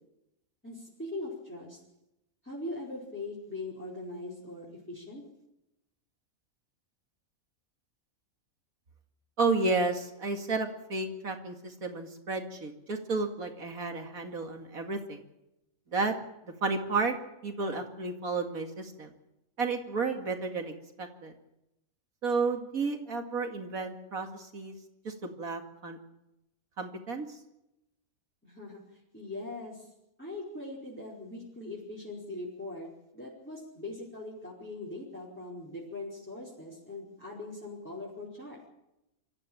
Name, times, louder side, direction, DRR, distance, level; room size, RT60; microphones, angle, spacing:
voice 1, 0.6-1.8 2.4-5.2 28.4-29.9 30.2-38.7, left 2 dB, 10° left, -7 dB, 4.8 m, -41 dB
voice 2, 9.4-15.2 15.9-16.1 16.4-17.1 17.4-19.1 19.6-21.3 22.2-24.8 25.0-26.0 26.8-27.4, right 3 dB, 75° right, 5 dB, 2.6 m, -32 dB
25.0 x 14.0 x 8.9 m, 0.89 s
omnidirectional pair, 1.5 m